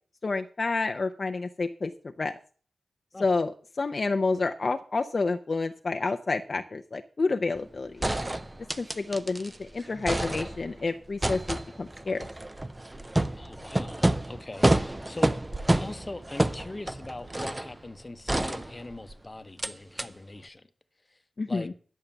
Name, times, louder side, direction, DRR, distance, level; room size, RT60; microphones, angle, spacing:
voice 1, 0.2-1.9 2.2-2.3 3.2-3.5 3.8-8.0 8.8-12.3 21.4-21.7, left 3 dB, 45° left, 0.6 m, -29 dB
sound 1, 7.6-7.7 8.0-9.6 9.8-10.8 11.2-17.7 18.3-19.1 19.6-19.7 20.0-20.1, right 1 dB, 15° right, 0.6 m, -28 dB
voice 2, 13.4-15.3 15.8-20.7 21.1-21.2 21.5-21.7, left 2 dB, 25° left, 0.9 m, -41 dB
11.0 x 6.5 x 6.9 m
wide cardioid pair, 105°, 0 cm